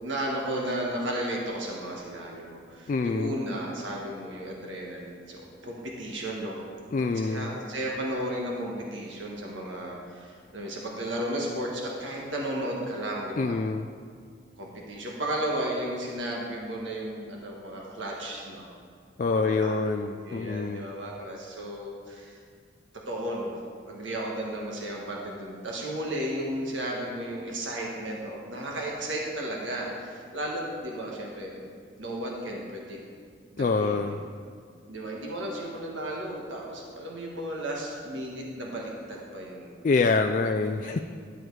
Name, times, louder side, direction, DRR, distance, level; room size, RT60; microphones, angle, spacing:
voice 1, 0.0-6.6 7.0-13.5 14.6-18.7 19.2-19.7 20.2-22.4 22.9-23.6 23.9-31.7 32.0-33.0 33.5-34.1 34.9-39.7 40.7-41.0, right 1 dB, 80° right, -2 dB, 1.5 m, -34 dB
voice 2, 2.9-3.4 6.9-7.6 13.4-13.9 19.2-20.8 33.6-34.2 39.8-41.0, left 4 dB, 40° left, 5 dB, 0.3 m, -26 dB
11.5 x 7.8 x 4.7 m, 2.1 s
head